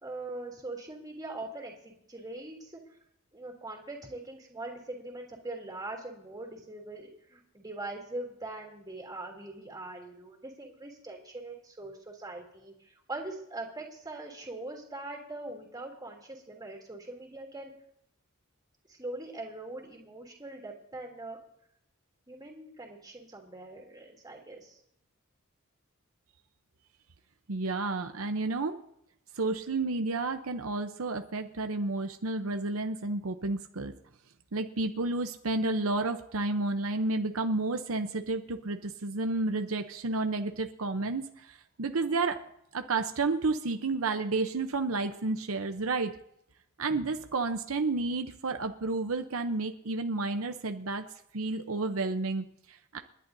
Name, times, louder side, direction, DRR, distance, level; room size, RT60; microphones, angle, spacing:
voice 1, 0.0-2.8 3.3-17.7 18.9-21.4 22.3-24.8, right 2 dB, 20° right, 0 dB, 3.1 m, -42 dB
voice 2, 27.5-28.8 29.4-33.9 34.5-42.4 42.7-46.2 46.8-51.0 51.3-53.0, right 3 dB, 75° right, 6 dB, 0.8 m, -31 dB
29.5 x 11.0 x 2.7 m, 0.75 s
head